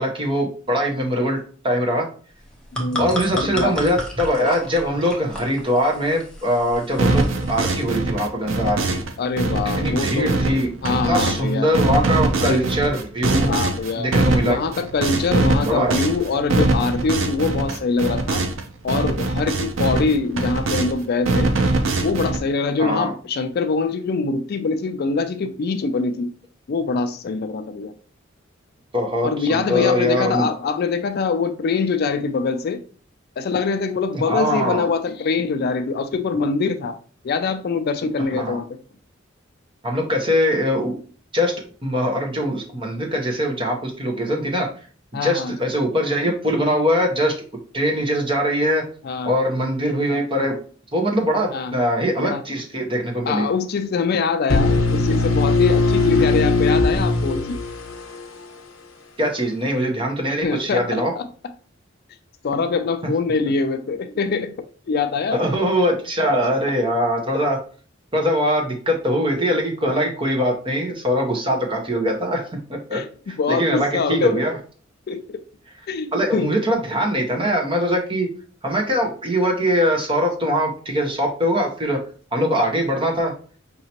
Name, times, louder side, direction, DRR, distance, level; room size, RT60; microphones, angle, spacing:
voice 1, 0.0-1.4 1.6-2.1 3.0-9.0 9.8-13.5 14.0-14.6 15.6-16.0 22.8-23.1 28.9-30.5 34.3-34.9 38.3-38.6 39.8-40.9 41.3-41.5 41.8-44.7 45.2-47.3 47.7-48.8 49.2-50.5 50.9-53.5 56.2-56.3 59.2-61.1 65.3-67.6 68.1-73.0 73.5-74.6 76.1-78.3 78.6-82.0 82.3-83.3, equal, 25° right, 1.0 m, -22 dB
sound 1, 2.4-7.8, equal, 5° left, 0.9 m, -33 dB
voice 2, 2.7-3.7 9.2-10.3 10.8-11.7 12.4-12.6 13.5-14.1 14.4-18.5 18.8-21.6 22.0-26.3 26.7-27.9 29.2-32.8 33.4-37.0 37.2-38.8 45.1-45.6 49.0-49.3 51.5-51.8 52.2-52.4 53.3-57.6 60.4-61.3 62.4-64.5 64.9-65.4 72.9-74.4 75.1-75.4 75.9-76.5, left 4 dB, 50° left, 0.4 m, -24 dB
sound 2, 7.0-9.1 9.4-11.4 11.7-18.6 18.9-20.9 21.3-22.4, right 2 dB, 75° right, 0.6 m, -22 dB
sound 3, 54.5-58.4, left 3 dB, 75° left, 0.8 m, -19 dB
5.3 x 2.8 x 2.9 m
head